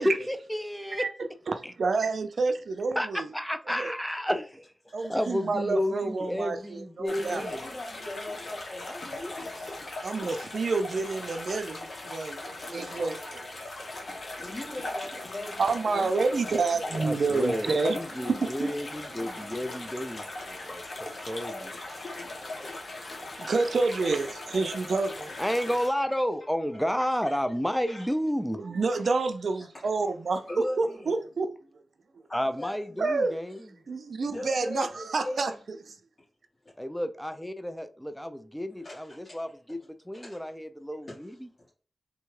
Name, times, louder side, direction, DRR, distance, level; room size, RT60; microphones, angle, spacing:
voice 1, 0.0-1.0 1.6-1.7 2.9-4.7 5.1-7.7 16.9-21.7 25.4-28.6 32.3-33.8 36.8-41.5, equal, 5° left, 0.4 m, -31 dB
voice 2, 1.0-3.3 3.8-3.9 4.9-7.5 10.0-12.4 12.7-13.4 15.6-18.7 23.4-25.3 28.6-31.5 33.0-33.4 33.9-35.5 35.9-36.0, right 3 dB, 75° right, 0.4 m, -28 dB
voice 3, 5.0-5.3 5.7-6.8 7.2-9.4 13.1-13.3 14.4-16.6 20.2-20.3 21.0-23.5 25.4-25.5 27.8-28.1 29.0-29.1 29.6-30.2 30.5-31.1 32.3-33.1 34.3-35.8 38.8-39.8 40.1-40.5 41.1-41.7, left 1 dB, 40° left, 1.6 m, -41 dB
sound 1, 7.1-25.9, left 2 dB, 65° left, 0.9 m, -39 dB
3.5 x 2.2 x 3.1 m
cardioid pair, 55°, 0 cm